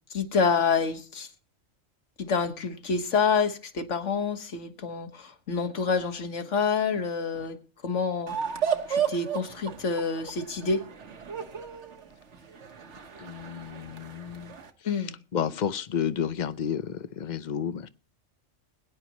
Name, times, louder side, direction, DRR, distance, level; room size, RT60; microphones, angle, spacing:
voice 1, 0.1-1.3 2.2-8.4 8.9-10.8 14.8-15.1, left 5 dB, 65° left, 8 dB, 1.7 m, -27 dB
sound 1, 8.3-14.7, right 7 dB, 65° right, 1.6 m, -33 dB
voice 2, 13.2-14.6 15.3-17.9, left 8 dB, 45° left, 13 dB, 0.7 m, -31 dB
22.0 x 10.5 x 3.0 m, 0.34 s
omnidirectional pair, 1.3 m